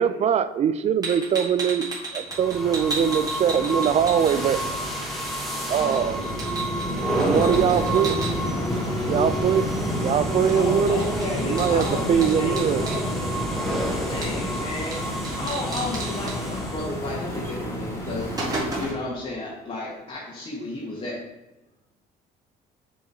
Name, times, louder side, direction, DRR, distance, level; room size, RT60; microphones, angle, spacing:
voice 1, 0.0-4.6 5.7-6.2 7.1-8.2 9.1-9.7 10.0-11.0 11.4-12.8, right 8 dB, 40° right, 12 dB, 0.4 m, -22 dB
sound 1, 1.0-4.8 5.0-8.3 10.5-10.6 10.9-13.0 14.2-14.6 14.9-15.0 15.2-16.3 17.4-17.6 17.9-19.1, right 2 dB, 20° right, 1.9 m, -34 dB
sound 2, 2.3-17.1, equal, ahead, 1.2 m, -29 dB
voice 2, 6.9-9.1 9.4-9.7 16.2-16.5, right 3 dB, 80° right, -3 dB, 1.9 m, -41 dB
sound 3, 7.3-18.9, equal, 15° left, 2.1 m, -33 dB
voice 3, 10.5-13.4 14.1-21.3, left 2 dB, 40° left, -6 dB, 1.7 m, -33 dB
7.1 x 3.7 x 4.2 m, 0.99 s
cardioid pair, 110°, 17 cm